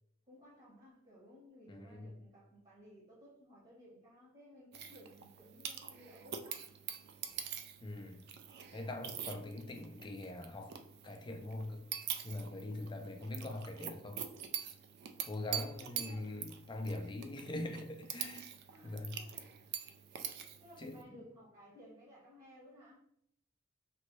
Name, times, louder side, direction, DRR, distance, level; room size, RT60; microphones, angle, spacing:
voice 1, 0.3-6.7 15.8-16.2 18.7-20.0 20.6-23.0, equal, 35° right, -7 dB, 1.1 m, -58 dB
voice 2, 1.7-2.1 7.8-8.2 8.7-10.7 11.0-11.8 12.2-14.2 15.3-18.5 18.8-19.2 20.8-20.9, left 2 dB, 25° left, 5 dB, 0.4 m, -42 dB
sound 1, 4.7-21.0, right 9 dB, 55° right, 0.3 m, -45 dB
3.0 x 2.7 x 3.0 m, 0.73 s
head